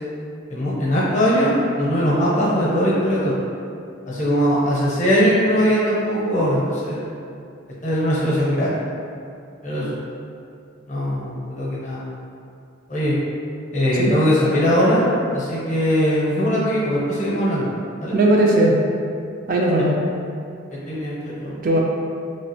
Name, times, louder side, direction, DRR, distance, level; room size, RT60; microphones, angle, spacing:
voice 1, 0.5-3.3 4.1-7.0 7.8-8.7 9.6-10.0 10.9-12.0 12.9-13.1 13.7-15.0 15.3-17.7 18.0-18.2 20.9-21.5, equal, 40° left, -6 dB, 0.7 m, -20 dB
voice 2, 18.1-18.8 19.5-20.0 21.6-21.8, right 1 dB, 45° right, -1 dB, 0.3 m, -17 dB
3.2 x 2.4 x 2.9 m, 2.5 s
head